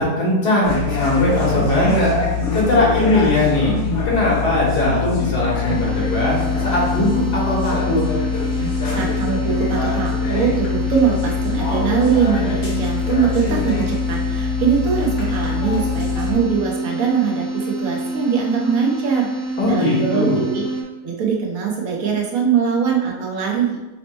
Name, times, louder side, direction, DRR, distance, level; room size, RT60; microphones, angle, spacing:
voice 1, 0.0-2.1 2.5-3.8 4.1-8.0 19.6-20.4, left 1 dB, 85° left, -5 dB, 2.0 m, -19 dB
sound 1, 0.6-16.3, left 7 dB, 50° left, 1.2 m, -24 dB
sound 2, 5.7-20.8, right 2 dB, 25° right, 0.4 m, -27 dB
voice 2, 8.9-19.3 19.7-20.6 21.0-23.8, right 6 dB, 60° right, -1 dB, 1.3 m, -22 dB
4.3 x 2.8 x 4.3 m, 1.1 s
omnidirectional pair, 1.7 m